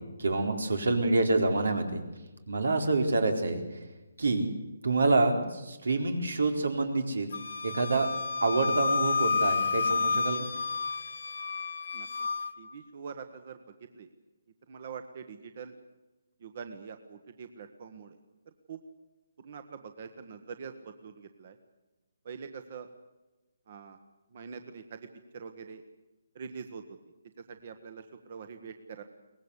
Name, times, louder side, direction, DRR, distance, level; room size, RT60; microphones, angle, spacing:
voice 1, 0.2-2.0 2.5-3.8 4.2-4.5 4.8-7.3 7.6-8.1 8.4-10.5, right 2 dB, 90° right, 6 dB, 4.2 m, -27 dB
Wind instrument woodwind instrument, 7.3-12.5, left 4 dB, 65° left, 1.4 m, -30 dB
voice 2, 11.9-12.3 12.6-13.6 13.9-14.1 14.7-15.7 16.4-18.2 18.7-18.8 19.4-21.6 22.2-22.9 23.7-24.0 24.3-25.1 25.3-25.8 26.3-26.8 27.5-29.0, right 6 dB, 40° right, 9 dB, 1.4 m, -44 dB
23.0 x 19.5 x 8.3 m, 1.1 s
hypercardioid pair, 165°, 0 cm